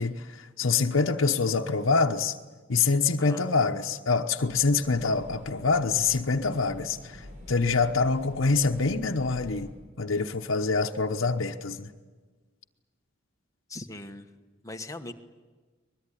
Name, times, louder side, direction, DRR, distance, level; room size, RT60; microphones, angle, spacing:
voice 1, 0.0-2.3 2.7-9.7 10.0-11.9, left 4 dB, 80° left, 2 dB, 1.0 m, -25 dB
sound 1, 4.4-9.7, equal, 40° right, 7.0 m, -46 dB
voice 2, 13.7-14.3 14.6-15.1, left 2 dB, 15° left, 5 dB, 1.4 m, -39 dB
23.0 x 21.0 x 10.0 m, 1.4 s
head